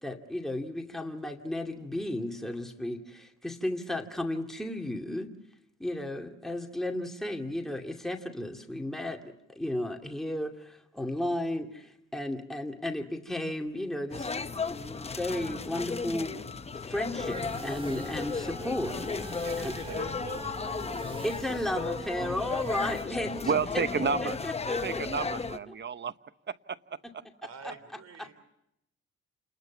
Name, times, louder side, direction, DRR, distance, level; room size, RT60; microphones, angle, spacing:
voice 1, 0.0-5.3 5.8-16.6 16.9-18.9 19.6-19.7 21.2-25.0 25.7-25.8 27.6-27.7 28.2-28.3, left 1 dB, ahead, 2 dB, 2.4 m, -34 dB
sound 1, 14.1-25.6, left 4 dB, 20° left, 0.9 m, -35 dB
sound 2, 17.2-23.0, right 1 dB, 20° right, 3.5 m, -42 dB
voice 2, 19.4-20.9 27.4-28.3, right 6 dB, 55° right, 13 dB, 3.4 m, -45 dB
voice 3, 23.5-24.4 24.8-26.1 26.5-26.8, right 6 dB, 35° right, 14 dB, 0.9 m, -30 dB
28.5 x 20.5 x 7.2 m, 0.81 s
cardioid pair, 90°, 30 cm